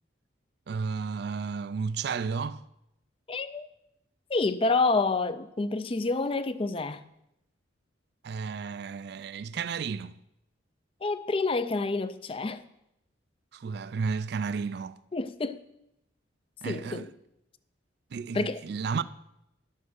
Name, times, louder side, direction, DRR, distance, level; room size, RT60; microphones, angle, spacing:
voice 1, 0.7-2.6 8.2-10.2 13.5-15.0 16.6-17.1 18.1-19.0, right 5 dB, 55° right, 0.3 m, -32 dB
voice 2, 3.3-3.7 4.3-7.0 11.0-12.6 15.1-15.6 16.6-17.1 18.3-18.6, left 3 dB, 30° left, 0.4 m, -28 dB
11.0 x 7.3 x 6.3 m
head